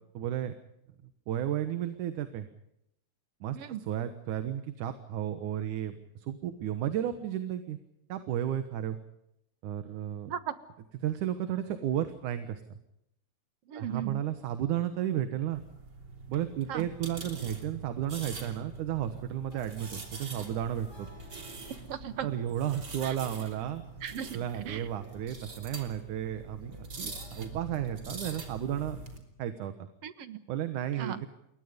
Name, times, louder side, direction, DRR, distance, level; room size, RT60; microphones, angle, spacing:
voice 1, 0.2-0.5 1.3-2.5 3.4-3.6 3.9-7.8 8.1-9.0 9.6-10.3 11.0-12.6 13.7-15.6 16.3-21.1 22.2-23.8 24.3-29.0 29.4-29.9 30.5-31.3, right 11 dB, 80° right, 9 dB, 2.8 m, -33 dB
voice 2, 13.7-14.3 16.7-16.9 21.9-22.3 23.0-23.2 24.0-24.9 30.0-30.4 31.0-31.2, right 10 dB, 60° right, 12 dB, 2.2 m, -37 dB
sound 1, 15.5-29.2, right 3 dB, 35° right, 3.7 m, -44 dB
sound 2, 19.5-29.0, equal, 10° left, 6.8 m, -60 dB
28.0 x 23.0 x 5.2 m, 0.80 s
omnidirectional pair, 3.5 m